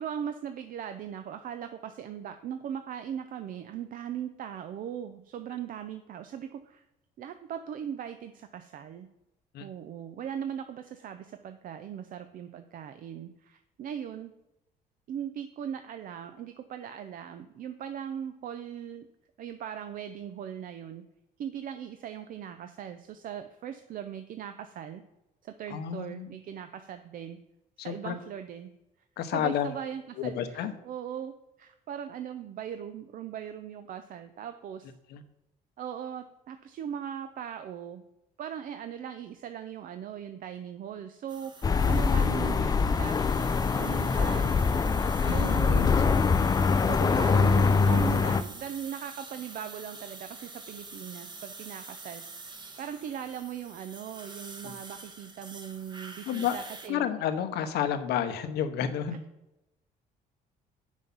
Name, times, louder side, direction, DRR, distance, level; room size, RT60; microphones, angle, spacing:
voice 1, 0.0-6.8 7.2-9.1 9.6-14.3 15.1-19.1 19.4-21.0 21.4-25.0 25.4-27.4 27.8-28.7 29.3-34.9 35.8-38.0 38.4-43.2 43.7-44.5 45.3-45.8 46.9-52.2 52.8-57.1, right 9 dB, 55° right, 9 dB, 0.5 m, -39 dB
voice 2, 25.7-26.3 27.8-28.2 29.2-29.7 30.2-30.7 35.1-35.2 41.8-42.0 45.2-45.9 54.6-54.7 56.3-56.6 56.9-59.2, left 9 dB, 80° left, 9 dB, 0.9 m, -31 dB
sound 1, 41.3-56.9, right 3 dB, 25° right, 1.1 m, -46 dB
sound 2, 41.6-48.4, left 5 dB, 20° left, 0.4 m, -24 dB
7.0 x 6.2 x 5.5 m, 0.94 s
cardioid pair, 110°, 17 cm